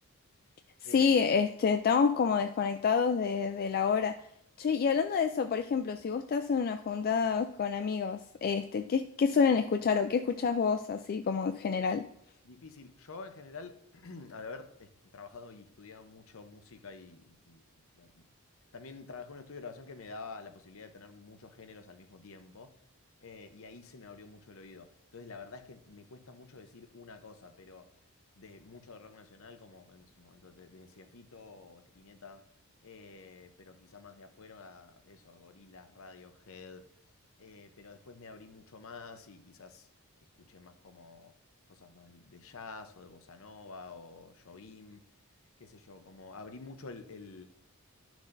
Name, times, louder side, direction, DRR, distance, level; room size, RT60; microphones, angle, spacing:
voice 1, 0.8-4.1 4.6-12.0, left 6 dB, 40° left, 7 dB, 0.3 m, -28 dB
voice 2, 12.4-17.6 18.0-18.2 18.7-22.7 23.2-27.9 28.4-32.4 32.8-36.8 37.4-39.9 40.5-41.3 41.7-45.0 45.6-47.4, left 4 dB, 65° left, 8 dB, 0.8 m, -49 dB
11.5 x 6.1 x 2.6 m, 0.72 s
head